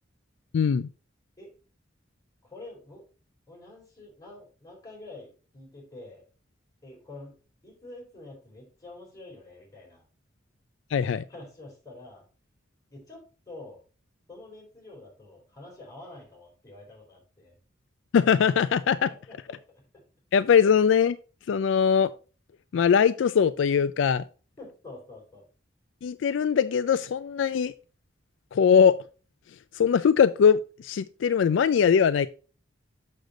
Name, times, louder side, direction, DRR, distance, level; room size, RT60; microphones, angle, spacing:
voice 1, 0.5-0.9 10.9-11.2 18.1-19.1 20.3-21.2 21.5-22.1 22.7-24.2 26.0-27.7 28.5-29.0 29.7-32.3, left 7 dB, 70° left, 0.3 m, -21 dB
voice 2, 2.4-3.0 3.5-6.2 6.8-7.4 7.6-10.0 11.3-12.2 12.9-13.8 14.3-17.6 18.8-19.6 24.6-25.4, left 2 dB, 20° left, 4.0 m, -47 dB
6.6 x 6.5 x 3.7 m
head